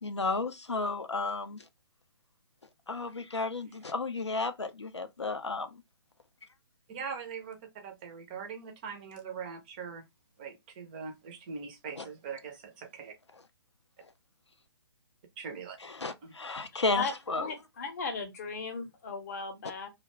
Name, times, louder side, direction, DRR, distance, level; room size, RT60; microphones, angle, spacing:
voice 1, 0.0-1.6 2.9-5.8 12.0-12.1 15.8-17.5, left 3 dB, 85° left, 0.4 m, -33 dB
voice 2, 6.9-7.6 7.8-10.0 10.4-13.1 15.4-15.8 16.2-16.3, right 6 dB, 20° right, 0.4 m, -41 dB
voice 3, 16.9-19.9, left 4 dB, 35° left, 0.7 m, -37 dB
2.4 x 2.1 x 3.0 m
figure-of-eight pair, 135°, 14 cm